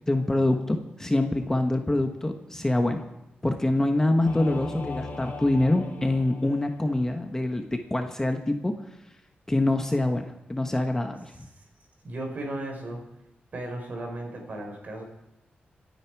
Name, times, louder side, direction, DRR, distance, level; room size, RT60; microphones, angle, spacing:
voice 1, 0.1-3.0 3.4-8.7 9.5-11.3, left 2 dB, 15° left, 5 dB, 1.2 m, -25 dB
Singing / Musical instrument, 4.2-7.1, left 3 dB, 55° left, 2.5 m, -38 dB
voice 2, 11.3-11.6 12.0-13.1 13.5-15.0, right 1 dB, 50° right, 2 dB, 4.7 m, -36 dB
27.0 x 9.5 x 4.7 m, 0.91 s
wide cardioid pair, 120°, 3 cm